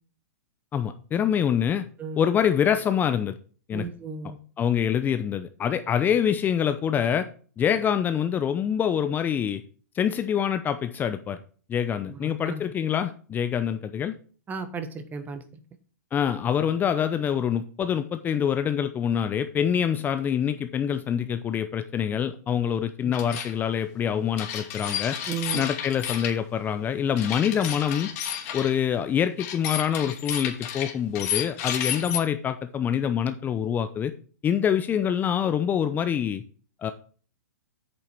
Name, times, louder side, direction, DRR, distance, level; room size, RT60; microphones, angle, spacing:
voice 1, 0.7-1.9 2.2-3.3 3.7-3.9 4.2-7.3 7.6-9.6 9.9-11.4 11.7-14.1 16.1-25.2 25.5-28.1 28.5-34.1 34.4-36.4 36.8-36.9, left 8 dB, 20° left, 10 dB, 0.6 m, -25 dB
voice 2, 3.7-4.4 12.1-12.6 14.5-15.4 23.0-23.1 25.3-25.6, right 5 dB, 20° right, 10 dB, 1.3 m, -34 dB
sound 1, 23.1-23.5 24.4-26.3 27.2-28.7 29.4-32.2, left 9 dB, 50° left, 2.9 m, -31 dB
8.7 x 6.9 x 4.5 m, 0.41 s
hypercardioid pair, 130°, 9 cm